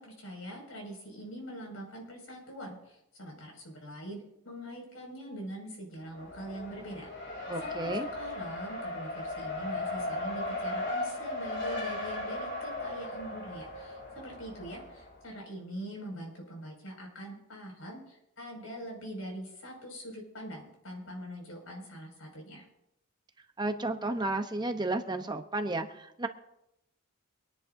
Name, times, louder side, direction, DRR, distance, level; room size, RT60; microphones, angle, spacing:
voice 1, 0.0-7.1 7.6-22.7, right 1 dB, 80° left, 0 dB, 5.7 m, -43 dB
Race car auto racing, 6.1-15.2, left 2 dB, 60° left, 2.6 m, -37 dB
voice 2, 7.5-8.1 23.6-26.3, right 2 dB, 20° right, 6 dB, 0.8 m, -32 dB
25.0 x 10.5 x 2.7 m, 0.83 s
head